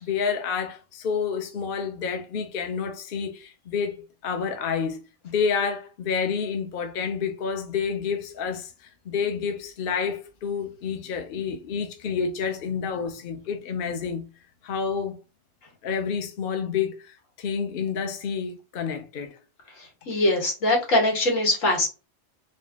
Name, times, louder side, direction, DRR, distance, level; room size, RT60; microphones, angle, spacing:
voice 1, 0.0-8.7 9.1-14.2 14.6-15.2 15.8-19.4, left 6 dB, 50° left, 0.8 m, -29 dB
voice 2, 19.7-21.9, left 1 dB, 85° left, 1.9 m, -22 dB
4.0 x 2.3 x 3.5 m
omnidirectional pair, 1.3 m